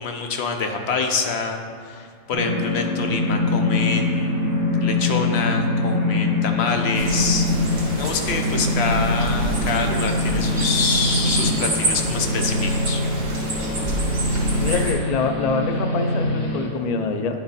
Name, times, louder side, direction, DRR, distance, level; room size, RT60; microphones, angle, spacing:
voice 1, 0.0-13.0 14.5-14.8, left 4 dB, 60° left, 4 dB, 0.9 m, -26 dB
sound 1, 2.3-16.7, left 1 dB, 25° left, 1.9 m, -23 dB
sound 2, 6.9-14.9, right 1 dB, 50° right, 1.5 m, -28 dB
voice 2, 14.6-17.4, left 4 dB, 85° left, 6 dB, 0.3 m, -25 dB
10.0 x 3.8 x 4.1 m, 2.2 s
omnidirectional pair, 1.3 m